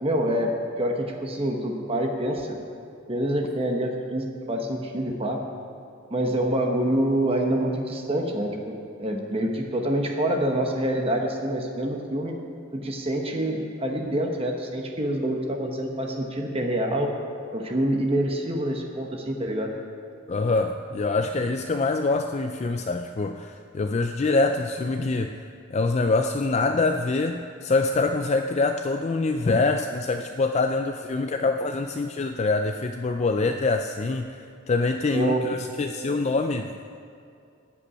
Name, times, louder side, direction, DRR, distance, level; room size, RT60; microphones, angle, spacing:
voice 1, 0.0-2.6 3.1-5.4 6.1-12.3 12.7-17.1 17.5-19.7 35.1-35.5, right 1 dB, 30° right, 1 dB, 1.0 m, -26 dB
voice 2, 20.3-25.4 25.7-36.8, left 3 dB, 30° left, 6 dB, 0.4 m, -25 dB
14.5 x 5.5 x 9.7 m, 2.5 s
head